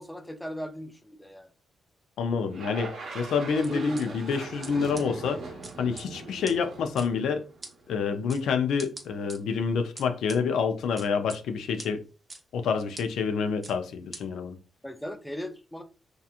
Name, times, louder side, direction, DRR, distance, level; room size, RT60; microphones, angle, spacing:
voice 1, 0.0-1.5 3.7-4.2 14.8-15.8, equal, 5° left, 0.5 m, -37 dB
voice 2, 2.2-5.4 5.8-7.4 7.9-12.0 12.5-14.6, left 5 dB, 80° left, 0.4 m, -28 dB
sound 1, 2.5-7.9, right 3 dB, 65° right, 0.8 m, -41 dB
sound 2, 3.6-4.0 4.6-4.7 5.0-5.1 5.6-6.1 6.5-6.6 7.0-7.1 7.6-7.7 8.3-8.4 8.8-9.4 10.0-10.4 11.0-11.4 11.8-11.9 12.3-12.4 13.0-13.1 13.6-13.7 14.1-14.2, right 2 dB, 30° right, 0.7 m, -41 dB
2.8 x 2.3 x 2.4 m
cardioid pair, 65°, 0 cm